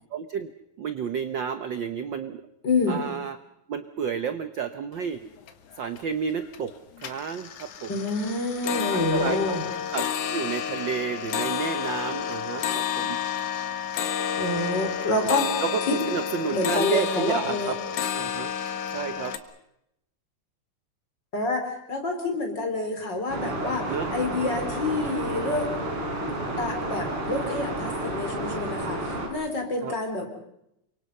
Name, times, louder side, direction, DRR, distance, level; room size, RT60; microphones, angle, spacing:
voice 1, 0.1-0.5 0.8-2.4 2.9-3.4 3.7-5.2 5.8-6.7 7.0-7.9 8.8-9.4 9.9-13.2 15.6-17.8 18.1-18.5 18.9-19.3 23.9-24.1 29.8-30.0, right 7 dB, 65° right, 10 dB, 1.1 m, -31 dB
voice 2, 2.6-3.0 7.9-9.6 14.4-16.1 16.5-17.7 21.3-23.8 24.1-25.7 26.6-30.3, left 2 dB, 35° left, 4 dB, 4.7 m, -28 dB
sound 1, 5.0-5.1 5.4-6.0 6.4-6.7 7.0-19.4, left 8 dB, 85° left, 3.1 m, -30 dB
sound 2, 23.3-29.3, right 1 dB, 45° right, 5.5 m, -31 dB
29.0 x 24.5 x 5.5 m, 0.81 s
omnidirectional pair, 3.4 m